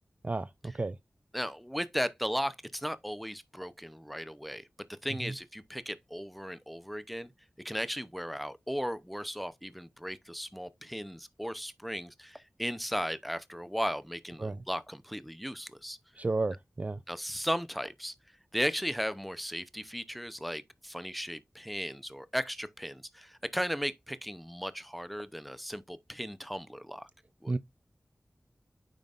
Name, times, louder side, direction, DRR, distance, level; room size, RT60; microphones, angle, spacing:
voice 1, 0.2-0.9 5.2-5.3 14.4-14.6 16.2-17.0 27.5-27.6, right 3 dB, 35° right, 0.3 m, -32 dB
voice 2, 1.3-4.7 5.0-7.3 7.6-16.0 17.1-18.1 18.5-27.1 27.4-27.6, equal, ahead, 0.7 m, -36 dB
9.3 x 5.1 x 2.5 m
wide cardioid pair, 75°, 4 cm